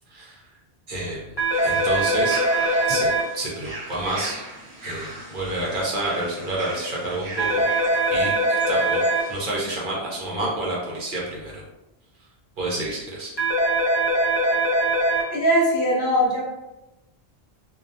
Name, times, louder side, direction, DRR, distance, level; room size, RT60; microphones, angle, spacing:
voice 1, 0.1-0.4 0.9-1.3 1.6-2.4 2.9-3.1 3.3-4.4 4.8-7.6 8.1-9.0 9.3-11.6 12.6-13.3, right 1 dB, 55° right, -4 dB, 0.7 m, -29 dB
sound 1, 1.4-3.2 7.4-9.2 13.4-15.2, right 1 dB, 30° left, 0.6 m, -21 dB
sound 2, 1.5-9.5, right 2 dB, 35° right, 0.4 m, -39 dB
voice 2, 15.3-16.4, equal, 60° left, -3 dB, 0.8 m, -20 dB
2.2 x 2.2 x 2.6 m, 0.98 s
omnidirectional pair, 1.1 m